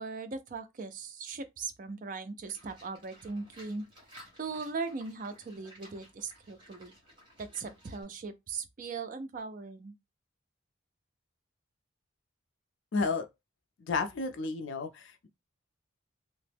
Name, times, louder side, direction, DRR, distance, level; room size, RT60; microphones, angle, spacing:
voice 1, 0.0-3.8 4.4-6.9 7.4-9.9, right 4 dB, 40° right, 0.4 m, -39 dB
Livestock farm animals working animals, 2.5-8.0, equal, 25° right, 1.1 m, -56 dB
voice 2, 12.9-13.2 13.9-15.3, left 4 dB, 65° left, 0.4 m, -32 dB
2.9 x 2.0 x 3.3 m
head